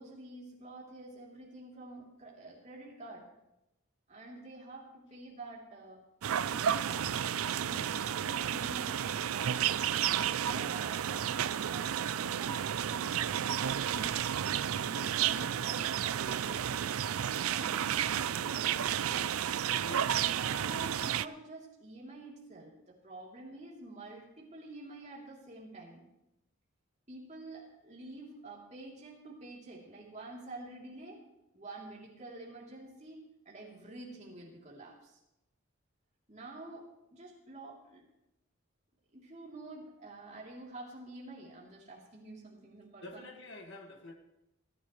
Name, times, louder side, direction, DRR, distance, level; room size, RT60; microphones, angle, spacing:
voice 1, 0.0-3.3 4.1-6.0 6.4-7.2 8.2-13.1 13.8-14.1 14.8-16.7 17.4-17.8 18.3-19.4 20.0-26.1 27.1-31.2 31.5-35.2 36.3-38.0 39.1-43.2, right 2 dB, 35° right, -3 dB, 3.3 m, -48 dB
sound 1, 6.2-21.3, right 9 dB, 85° right, 0.4 m, -32 dB
voice 2, 7.6-7.9 8.2-8.3 19.8-20.1 43.0-44.1, left 2 dB, 55° left, 3 dB, 2.1 m, -48 dB
27.5 x 10.0 x 3.3 m, 0.90 s
head